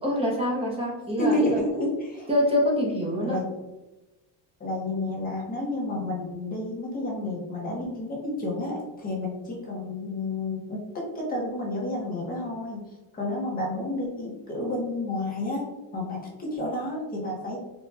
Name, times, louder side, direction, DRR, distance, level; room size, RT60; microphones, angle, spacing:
voice 1, 0.0-1.6 2.3-3.4, left 1 dB, 15° right, -3 dB, 0.6 m, -25 dB
voice 2, 1.2-2.3 3.2-3.5 4.6-12.8 13.1-17.6, left 1 dB, 20° left, -2 dB, 0.8 m, -30 dB
4.1 x 2.2 x 3.2 m, 1.1 s
cardioid pair, 180°, 43 cm